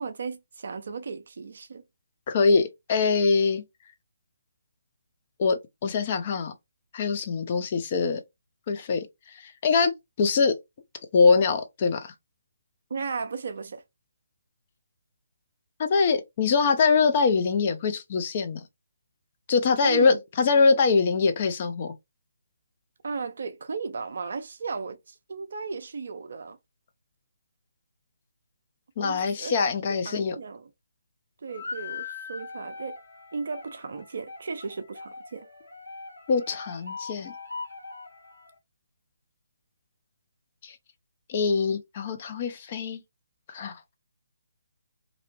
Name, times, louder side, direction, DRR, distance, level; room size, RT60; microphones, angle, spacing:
voice 1, 0.0-1.8 12.9-13.8 19.8-20.2 23.0-26.6 29.0-29.6 30.1-30.7 31.4-33.0 33.3-35.5, right 4 dB, 55° right, 0.4 m, -35 dB
voice 2, 2.3-3.6 5.4-6.5 6.9-8.2 8.7-9.1 9.4-9.9 10.2-10.5 11.1-12.1 15.8-18.6 19.5-21.9 29.0-30.3 36.3-37.3 40.6-40.8 41.3-43.0 43.5-43.8, left 4 dB, 40° left, 0.5 m, -23 dB
sound 1, 31.5-38.5, left 4 dB, 80° left, 1.3 m, -41 dB
2.6 x 2.1 x 2.8 m
figure-of-eight pair, 145°, 0 cm